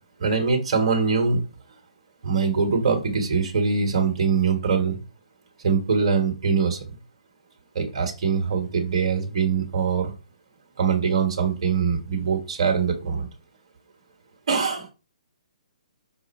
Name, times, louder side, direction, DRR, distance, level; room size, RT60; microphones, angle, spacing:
voice 1, 0.2-1.4 2.2-5.0 5.6-6.8 7.7-10.1 10.8-13.3 14.5-14.9, right 5 dB, 55° right, 2 dB, 1.3 m, -23 dB
5.0 x 2.4 x 4.2 m, 0.31 s
figure-of-eight pair, 135°, 4 cm